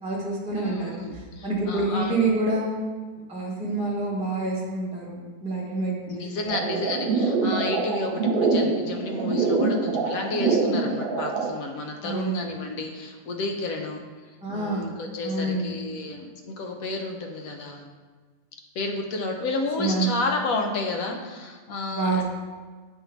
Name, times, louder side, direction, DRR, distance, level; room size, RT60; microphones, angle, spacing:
voice 1, 0.0-2.8 3.3-6.9 12.0-12.4 14.4-14.9 15.2-15.8 19.8-20.1 21.9-22.2, right 2 dB, 5° right, -6 dB, 0.7 m, -27 dB
voice 2, 0.6-2.2 6.1-14.0 14.5-17.9 18.8-22.2, left 2 dB, 65° left, 3 dB, 1.0 m, -31 dB
sound 1, 6.5-11.5, right 4 dB, 55° right, 1.3 m, -25 dB
8.0 x 2.7 x 4.4 m, 1.4 s
omnidirectional pair, 1.8 m